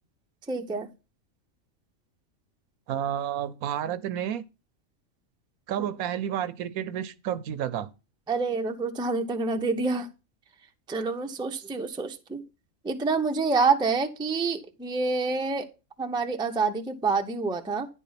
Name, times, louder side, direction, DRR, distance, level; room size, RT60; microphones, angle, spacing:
voice 1, 0.5-0.9 8.3-10.1 10.9-12.4 12.8-15.7 16.0-17.9, right 4 dB, 5° right, 0.4 m, -27 dB
voice 2, 2.9-4.4 5.7-7.9, right 10 dB, 80° right, 1.1 m, -30 dB
9.7 x 4.6 x 5.7 m
omnidirectional pair, 1.5 m